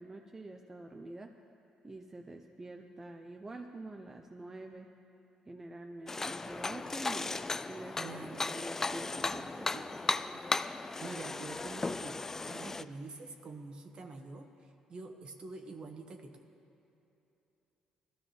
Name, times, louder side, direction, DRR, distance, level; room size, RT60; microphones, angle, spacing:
voice 1, 0.0-1.3 1.8-4.9 5.5-7.4 7.7-10.0, right 2 dB, 20° right, 3 dB, 0.7 m, -46 dB
sound 1, 6.1-12.8, left 3 dB, 20° left, 0.3 m, -36 dB
voice 2, 8.0-8.5 11.0-16.5, right 3 dB, 45° right, 4 dB, 1.3 m, -46 dB
20.0 x 14.0 x 3.3 m, 2.9 s
cardioid pair, 100°, 2 cm